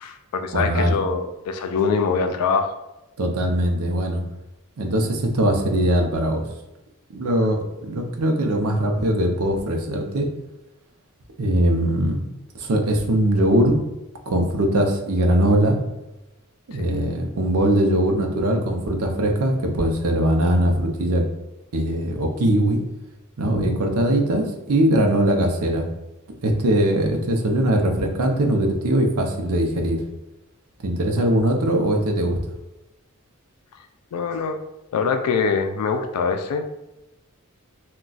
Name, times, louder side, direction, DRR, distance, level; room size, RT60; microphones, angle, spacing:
voice 1, 0.0-2.8 7.3-7.5 16.8-17.0 34.1-34.6 34.9-36.6, left 5 dB, 85° left, 6 dB, 0.3 m, -24 dB
voice 2, 0.5-1.0 3.2-4.2 4.8-6.5 7.1-10.3 11.4-12.2 12.5-13.7 14.3-15.8 16.7-21.2 21.7-22.8 23.4-25.9 26.4-30.0 30.8-32.4, right 1 dB, 70° right, 2 dB, 0.6 m, -21 dB
2.3 x 2.2 x 3.9 m, 0.93 s
head